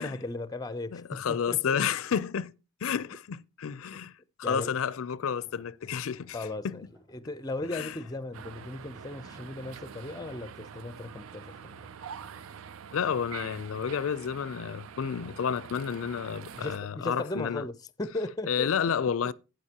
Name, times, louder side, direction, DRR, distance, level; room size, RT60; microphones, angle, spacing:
voice 1, 0.0-1.8 4.4-4.7 6.3-6.8 7.1-11.8 16.5-17.7 18.0-18.7, left 2 dB, 20° left, 0.5 m, -36 dB
voice 2, 0.9-2.5 2.8-4.1 4.4-6.4 6.6-6.8 7.7-8.0 12.9-17.7 18.5-19.3, left 7 dB, 90° left, 0.4 m, -30 dB
sound 1, 5.4-15.6 16.0-16.3, equal, 25° right, 2.7 m, -59 dB
sound 2, 8.3-16.8, right 7 dB, 85° right, 0.4 m, -45 dB
11.0 x 9.3 x 2.8 m
head